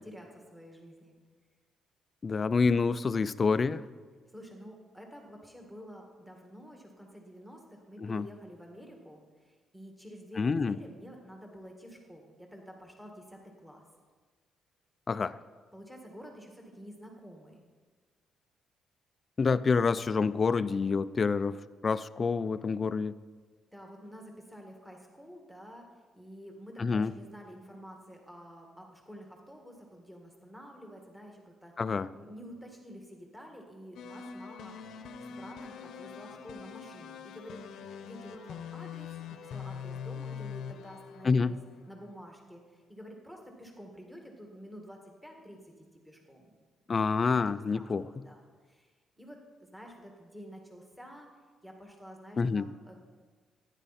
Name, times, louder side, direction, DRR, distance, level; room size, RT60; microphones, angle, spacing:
voice 1, 0.0-1.1 4.3-13.8 15.7-17.6 23.7-25.9 26.2-31.7 32.1-34.7 35.4-41.6 41.9-45.7 46.0-46.6 47.3-48.4 48.6-48.9 49.2-49.4 49.7-51.3 51.6-53.1, equal, 5° right, 1 dB, 1.9 m, -49 dB
voice 2, 2.2-3.8 8.0-8.2 10.4-10.8 15.1-15.4 19.4-23.1 26.8-27.1 31.8-32.1 41.2-41.5 46.9-48.0 52.4-52.7, left 4 dB, 35° left, 15 dB, 0.4 m, -27 dB
sound 1, 34.0-42.1, left 7 dB, 75° left, 0.8 m, -43 dB
15.5 x 10.0 x 4.2 m, 1.5 s
cardioid pair, 90°, 0 cm